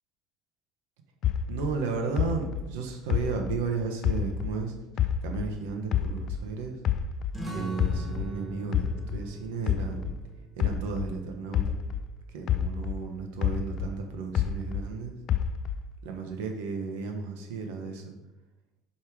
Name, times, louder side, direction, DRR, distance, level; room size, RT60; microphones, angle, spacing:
sound 1, 1.2-4.6 5.0-7.4 7.8-12.1 12.5-14.9 15.3-16.0, left 9 dB, 45° left, 0.3 m, -29 dB
voice 1, 1.5-6.8 7.5-10.2 10.6-11.7 12.3-15.1 16.0-18.2, right 4 dB, 90° right, 3 dB, 1.2 m, -34 dB
sound 2, 7.3-12.5, right 1 dB, 5° right, 1.4 m, -42 dB
5.3 x 5.2 x 4.8 m, 1.0 s
cardioid pair, 135°, 0 cm